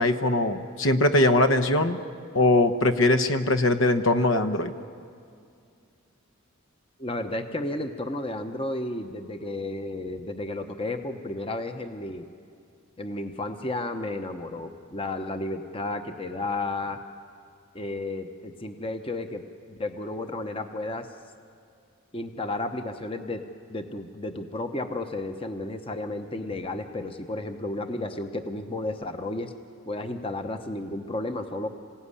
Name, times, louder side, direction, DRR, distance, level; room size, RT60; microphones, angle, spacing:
voice 1, 0.0-2.0 2.3-4.7, left 2 dB, 65° left, 8 dB, 1.1 m, -21 dB
voice 2, 7.0-12.3 13.0-17.0 17.7-19.4 19.7-21.1 22.1-29.5 29.9-31.7, left 2 dB, 25° left, 7 dB, 0.9 m, -32 dB
26.5 x 16.5 x 9.8 m, 2.3 s
head